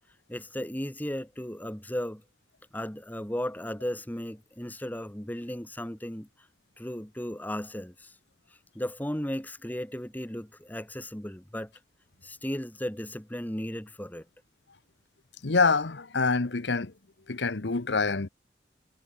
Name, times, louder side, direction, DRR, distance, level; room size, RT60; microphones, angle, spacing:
voice 1, 0.3-2.2 2.7-6.3 6.8-8.1 8.7-11.7 12.2-14.2, equal, 10° left, 1.3 m, -35 dB
voice 2, 15.4-16.9 17.3-18.3, left 4 dB, 80° left, 1.1 m, -26 dB
head